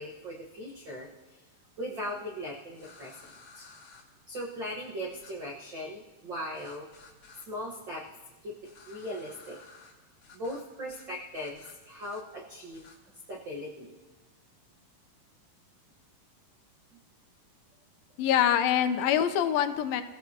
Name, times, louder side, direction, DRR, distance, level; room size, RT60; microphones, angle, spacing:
voice 1, 0.0-1.4 1.8-3.7 4.3-6.9 7.5-8.0 8.4-8.6 8.9-9.6 10.3-12.8 13.3-14.0, equal, 65° right, -2 dB, 1.1 m, -39 dB
sound 1, 2.7-4.0 5.1-5.3 6.5-7.5 8.6-9.9 10.2-10.6 10.9-11.1 11.3-12.2 12.7-13.0, left 4 dB, 55° left, 3.5 m, -54 dB
voice 2, 18.2-20.0, left 10 dB, 80° left, 9 dB, 2.5 m, -25 dB
27.5 x 15.0 x 2.9 m, 1.3 s
omnidirectional pair, 4.2 m